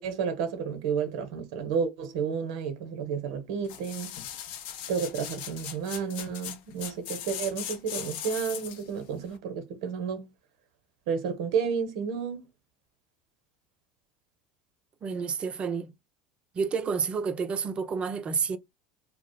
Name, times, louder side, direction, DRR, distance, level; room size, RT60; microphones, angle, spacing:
voice 1, 0.0-4.1 4.9-10.3 11.1-12.5, right 6 dB, 70° right, 0.8 m, -31 dB
sound 1, 3.6-8.9 9.4-9.5, left 10 dB, 60° left, 0.5 m, -39 dB
voice 2, 15.0-15.9 16.5-18.6, right 5 dB, 35° right, 0.5 m, -29 dB
2.3 x 2.0 x 3.8 m
hypercardioid pair, 75°, 3 cm